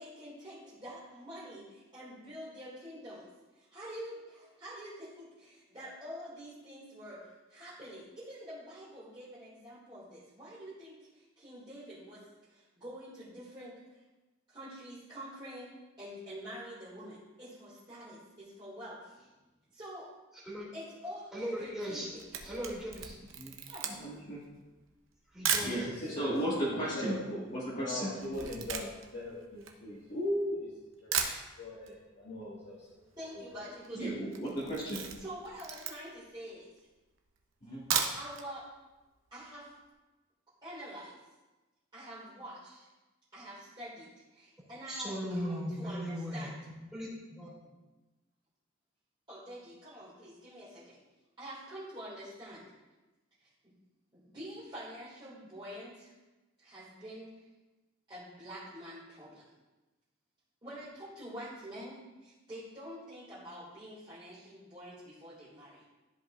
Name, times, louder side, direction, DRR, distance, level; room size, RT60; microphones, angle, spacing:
voice 1, 0.0-3.3 3.5-7.2 7.5-13.8 14.5-15.7 16.0-19.1 19.7-20.1 20.7-21.3 21.6-22.2 23.7-24.0 33.2-34.1 35.2-36.7 38.1-38.6 39.3-39.7 40.6-41.1 41.9-42.9 43.3-46.6 47.6-47.7 49.3-51.0 51.4-52.6 53.4-53.5 54.1-56.1 56.6-57.4 58.1-59.5 60.6-65.8, equal, 25° right, -11 dB, 2.2 m, -46 dB
voice 2, 21.3-22.1 22.4-23.1 25.3-25.9 44.9-46.5 46.9-47.5, equal, 5° right, -7 dB, 2.5 m, -38 dB
Camera, 21.9-25.8 26.5-26.6 26.8-30.4 30.8-30.9 31.1-32.0 32.2-32.3 32.6-32.7 32.9-33.3 33.7-33.9 34.3-36.3 36.8-36.9 37.7-38.5 38.8-38.9 39.3-39.4, right 7 dB, 75° right, 0.8 m, -36 dB
voice 3, 24.0-24.5 25.6-25.8 26.1-27.2 27.5-28.2 33.9-35.1 37.6-37.8, right 1 dB, 40° left, -9 dB, 1.7 m, -35 dB
voice 4, 25.7-26.3 26.6-27.4 27.7-30.7 31.0-31.2 31.6-32.9 33.3-33.6, left 1 dB, 65° left, -8 dB, 1.9 m, -39 dB
13.0 x 5.3 x 2.5 m, 1.1 s
head